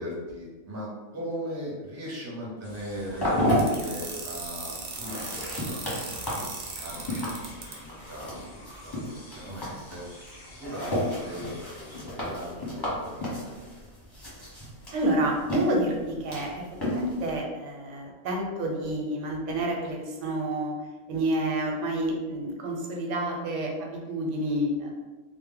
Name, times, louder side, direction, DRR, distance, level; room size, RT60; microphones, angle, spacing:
voice 1, 0.0-5.5 5.7-10.0 10.6-13.8, equal, 20° right, -5 dB, 0.5 m, -39 dB
sound 1, 2.6-12.0, left 1 dB, 40° left, 0.4 m, -49 dB
sound 2, 2.7-17.4, equal, 25° left, 0.7 m, -33 dB
sound 3, 3.6-7.7, right 4 dB, 60° right, 0.6 m, -37 dB
voice 2, 14.9-20.8 21.1-24.9, right 1 dB, 90° right, 1 dB, 0.9 m, -29 dB
2.0 x 2.0 x 3.7 m, 1.2 s
omnidirectional pair, 1.2 m